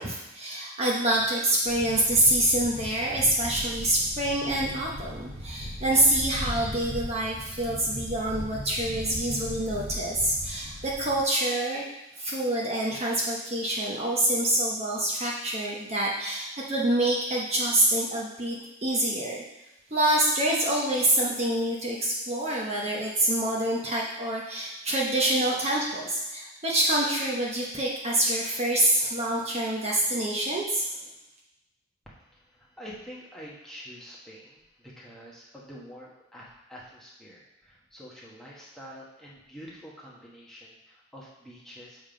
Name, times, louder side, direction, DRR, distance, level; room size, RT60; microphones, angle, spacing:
voice 1, 0.0-11.8 12.2-19.4 19.9-30.9, right 1 dB, 30° right, -4 dB, 0.9 m, -26 dB
sound 1, 1.7-11.2, equal, 65° right, 1.2 m, -38 dB
voice 2, 32.1-42.0, equal, ahead, -6 dB, 1.2 m, -47 dB
7.4 x 3.6 x 5.1 m, 0.96 s
head